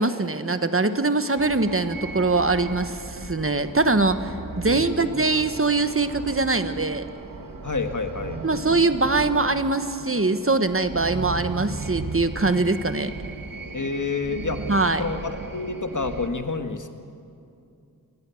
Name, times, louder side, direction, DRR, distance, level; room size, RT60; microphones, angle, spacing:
voice 1, 0.0-7.0 8.4-13.1 14.7-15.0, right 3 dB, 40° right, 10 dB, 1.1 m, -23 dB
sound 1, 1.4-16.3, right 3 dB, 80° right, 1.4 m, -36 dB
voice 2, 4.7-5.1 7.6-8.4 13.7-14.6 15.0-16.9, left 4 dB, 60° left, 7 dB, 1.6 m, -29 dB
27.0 x 19.0 x 7.0 m, 2.5 s
wide cardioid pair, 50°, 34 cm